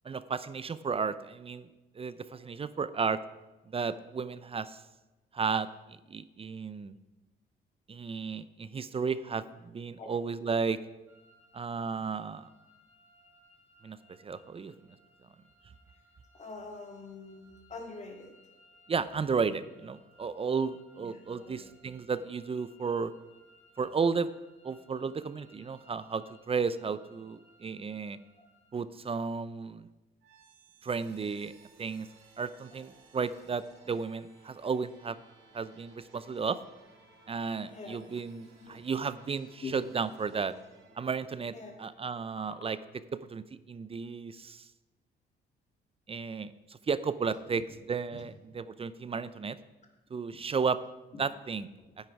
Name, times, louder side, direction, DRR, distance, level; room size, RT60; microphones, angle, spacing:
voice 1, 0.0-1.7 2.0-3.2 3.7-4.8 5.3-6.9 7.9-10.8 11.5-12.5 13.8-14.0 14.2-14.8 18.9-23.1 23.8-24.3 24.6-28.2 28.7-29.9 30.8-31.5 31.8-32.1 32.4-35.2 35.5-36.6 37.3-40.5 41.0-41.5 41.8-42.8 43.1-44.7 46.1-46.5 46.9-47.6 47.9-49.6 50.1-50.8 51.2-51.7, right 5 dB, 30° right, 15 dB, 0.5 m, -33 dB
voice 2, 10.5-10.8 16.3-18.5 20.3-20.4 21.1-21.7 28.4-28.5 37.6-38.0 38.6-39.0 39.6-39.7 41.5-41.7 47.5-47.6 48.1-48.2 50.3-50.5 51.1-51.2, left 4 dB, 35° left, 2 dB, 2.2 m, -46 dB
sound 1, 11.1-28.7, equal, 10° right, 3.0 m, -64 dB
sound 2, 30.2-44.1, right 3 dB, 90° right, 3.6 m, -61 dB
10.5 x 9.4 x 4.7 m, 1.1 s
cardioid pair, 90°, 20 cm